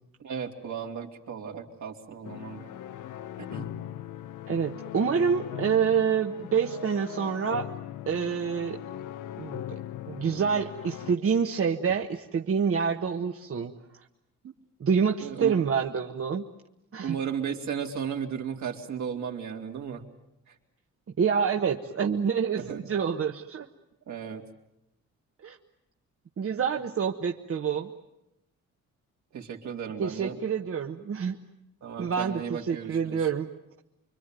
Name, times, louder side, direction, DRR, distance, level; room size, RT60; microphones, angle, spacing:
voice 1, 0.2-2.7 3.4-3.7 15.2-15.5 17.0-20.0 20.5-20.6 22.7-22.8 24.1-24.5 29.3-30.4 31.8-33.2, right 7 dB, 70° right, 1 dB, 3.6 m, -35 dB
sound 1, 2.2-11.2, left 12 dB, 85° left, 1.0 m, -39 dB
voice 2, 4.5-7.7 8.1-8.8 9.4-9.6 10.1-13.7 14.8-16.4 16.9-17.2 21.2-23.7 25.4-25.6 26.4-27.9 30.0-31.4 32.0-33.5, right 6 dB, 45° right, 3 dB, 1.4 m, -27 dB
26.0 x 23.5 x 9.2 m, 0.83 s
cardioid pair, 90°, 30 cm